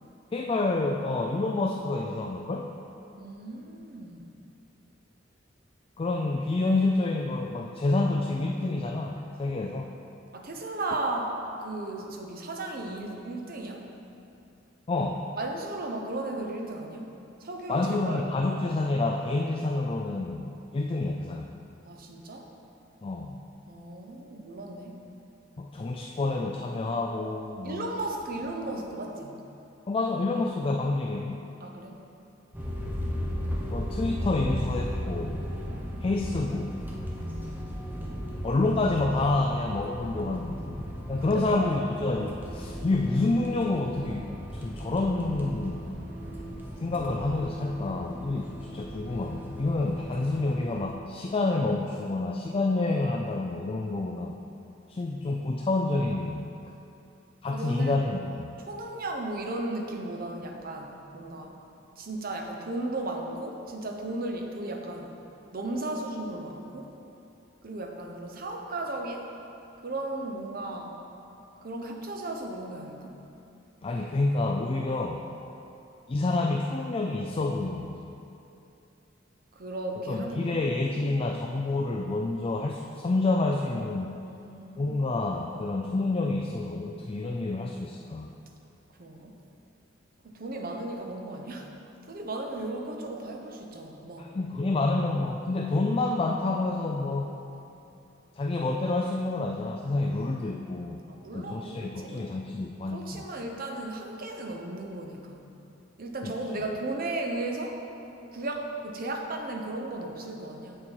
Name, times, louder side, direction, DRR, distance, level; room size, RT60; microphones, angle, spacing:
voice 1, 0.3-2.7 6.0-9.9 14.9-15.3 17.7-21.5 23.0-23.4 25.6-27.8 29.9-31.4 33.7-35.5 36.0-36.8 38.4-45.8 46.8-54.3 54.9-56.5 57.4-58.6 73.8-75.3 76.1-78.1 80.1-84.1 84.8-88.3 94.2-97.3 98.4-101.0 101.3-103.2 106.2-106.3, left 2 dB, 30° left, 2 dB, 0.4 m, -28 dB
voice 2, 3.2-4.3 10.3-13.9 15.3-17.1 17.4-18.2 21.8-22.5 23.7-25.0 27.6-29.4 31.6-32.0 41.3-41.7 57.5-58.0 58.7-61.6 62.0-65.2 65.5-66.9 67.6-69.3 69.8-71.0 71.6-73.2 79.5-80.6 80.9-81.1 84.3-85.0 89.0-89.4 90.2-91.7 92.1-94.3 101.1-102.3 102.9-105.5 106.0-107.8 108.3-110.8, right 2 dB, 50° right, 2 dB, 0.8 m, -35 dB
sound 1, 32.5-50.9, equal, 10° right, 0.9 m, -36 dB
7.4 x 6.6 x 4.6 m, 2.8 s
head